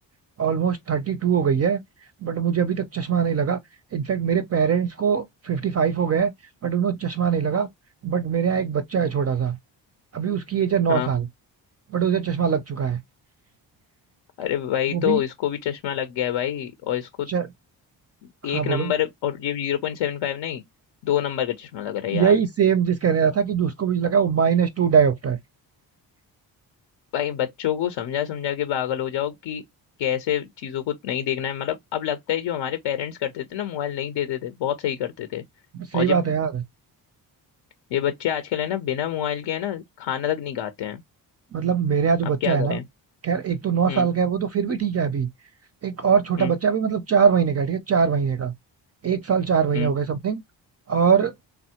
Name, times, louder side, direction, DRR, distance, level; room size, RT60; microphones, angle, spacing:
voice 1, 0.4-1.8 2.2-3.6 3.9-6.3 6.6-7.7 8.0-9.6 10.1-11.3 11.9-13.0 14.9-15.2 17.3-17.5 18.4-18.9 22.1-25.4 35.7-36.6 41.5-42.8 43.2-45.3 45.8-48.5 49.0-50.4 50.9-51.3, right 7 dB, 35° right, 0.4 m, -22 dB
voice 2, 14.4-17.3 18.4-20.6 21.0-22.3 27.1-29.6 30.0-35.4 35.9-36.2 37.9-41.0 42.4-42.8 43.9-44.1 46.4-46.5 49.7-49.9, left 10 dB, 75° left, 0.6 m, -27 dB
3.3 x 2.0 x 2.8 m
supercardioid pair, 60°, 45 cm